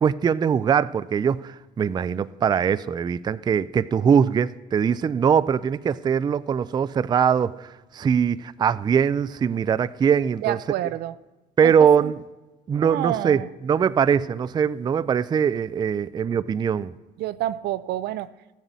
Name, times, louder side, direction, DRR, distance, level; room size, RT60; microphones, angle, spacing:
voice 1, 0.0-10.6 11.6-12.1 12.7-16.9, right 7 dB, 25° right, 0.3 m, -22 dB
voice 2, 10.4-11.2 11.6-12.1 12.7-13.5 17.2-18.6, right 13 dB, 75° right, 0.5 m, -29 dB
14.0 x 7.4 x 8.2 m
cardioid pair, 110°, 17 cm